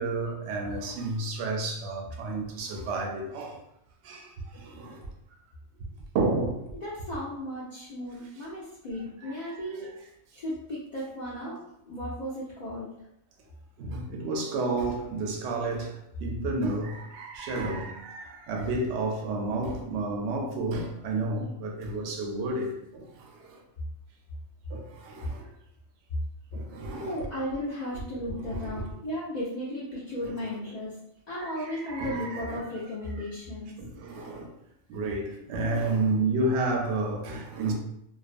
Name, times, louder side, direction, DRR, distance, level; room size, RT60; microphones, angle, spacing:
voice 1, 0.0-3.6 4.0-5.1 6.1-6.7 9.2-9.6 13.8-23.6 24.7-25.5 26.5-27.3 28.3-28.8 31.4-32.6 33.2-33.3 33.8-34.5 34.9-37.7, right 2 dB, 65° right, 0.7 m, -31 dB
voice 2, 6.7-9.9 10.3-11.6 11.9-12.9 27.0-30.9 31.3-33.8, left 1 dB, 80° left, 0.4 m, -35 dB
2.4 x 2.2 x 2.4 m
omnidirectional pair, 1.4 m